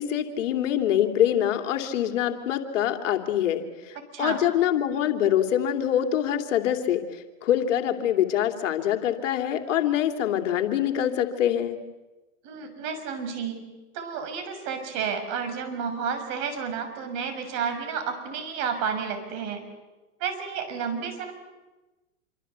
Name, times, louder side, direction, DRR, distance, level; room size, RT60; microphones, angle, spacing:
voice 1, 0.0-11.8, left 10 dB, 60° left, 6 dB, 3.0 m, -25 dB
voice 2, 12.4-13.6 13.9-19.6 20.2-21.3, right 6 dB, 45° right, 7 dB, 6.7 m, -31 dB
27.0 x 25.5 x 8.2 m, 1.1 s
hypercardioid pair, 125°, 40 cm